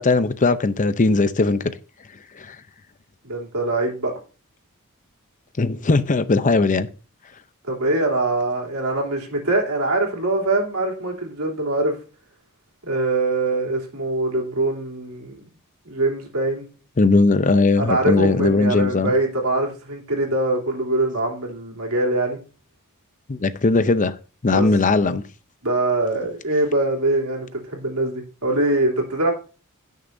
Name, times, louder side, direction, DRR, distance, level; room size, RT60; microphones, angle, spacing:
voice 1, 0.0-1.6 2.4-2.6 5.6-6.9 17.0-19.1 23.3-24.1 24.4-25.2, left 3 dB, 35° left, 0.6 m, -19 dB
voice 2, 3.2-4.1 7.6-12.0 12.8-15.4 15.8-16.6 17.8-22.4 24.5-24.7 25.6-29.3, right 2 dB, 80° right, 3.1 m, -23 dB
16.5 x 6.5 x 2.7 m
head